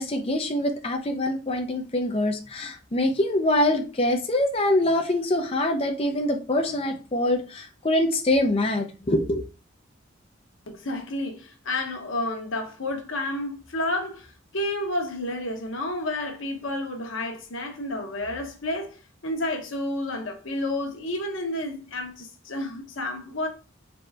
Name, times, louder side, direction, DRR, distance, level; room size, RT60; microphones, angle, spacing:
voice 1, 0.0-9.4, left 1 dB, 30° left, 0.5 m, -24 dB
voice 2, 10.7-14.3 14.5-23.5, left 1 dB, 90° left, 1.0 m, -30 dB
4.1 x 3.3 x 3.3 m
head